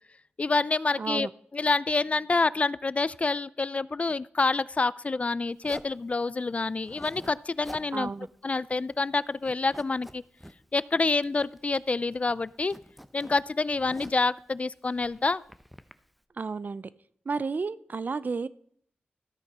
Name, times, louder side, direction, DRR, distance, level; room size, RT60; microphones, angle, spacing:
voice 1, 0.4-1.3 1.5-8.1 8.4-10.2 10.7-12.7 13.1-15.4, left 3 dB, 35° left, 20 dB, 0.3 m, -27 dB
voice 2, 1.0-1.3 7.9-8.3 16.4-16.9 17.3-18.5, right 4 dB, 55° right, 17 dB, 0.5 m, -32 dB
Zipper (clothing), 5.6-6.0 6.8-7.3 7.6-7.9 8.3-8.4 8.7-9.1 9.4-10.5 11.2-11.9 12.1-14.3 14.9-15.9, equal, ahead, 0.7 m, -47 dB
13.5 x 6.5 x 5.4 m, 0.62 s
wide cardioid pair, 85°, 4 cm